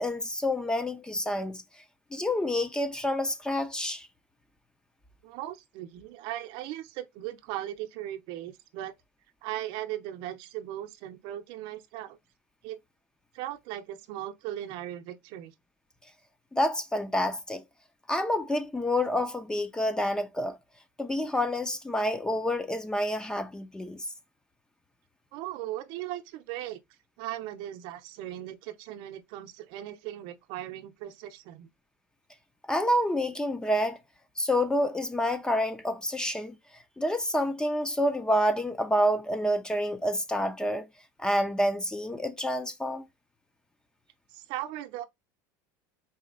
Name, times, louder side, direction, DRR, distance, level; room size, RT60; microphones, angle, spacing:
voice 1, 0.0-1.6 2.1-4.1 16.5-17.6 18.1-20.6 21.0-24.0 32.7-34.0 34.4-36.6 37.0-40.9 41.2-43.1, left 1 dB, 10° left, 0.6 m, -28 dB
voice 2, 5.2-8.9 9.4-12.2 12.6-12.8 13.3-15.5 25.3-26.8 27.2-31.7 44.3-45.0, right 13 dB, 60° right, 0.7 m, -38 dB
4.2 x 2.8 x 3.8 m
supercardioid pair, 130°, 9 cm